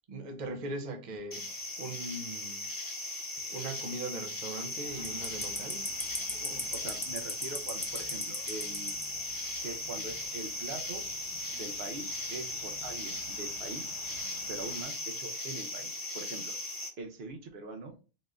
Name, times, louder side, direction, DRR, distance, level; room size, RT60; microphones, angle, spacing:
voice 1, 0.1-1.5 1.8-2.7 3.5-5.8 6.3-6.7, right 2 dB, 50° right, 0.8 m, -40 dB
sound 1, 1.3-16.9, left 2 dB, 20° left, 0.9 m, -37 dB
sound 2, 4.8-14.8, equal, 25° right, 0.9 m, -55 dB
voice 2, 6.7-8.9 9.6-11.0 11.5-14.0 14.5-16.5 17.0-18.0, right 3 dB, 75° right, 1.0 m, -43 dB
4.1 x 2.5 x 3.3 m
omnidirectional pair, 1.1 m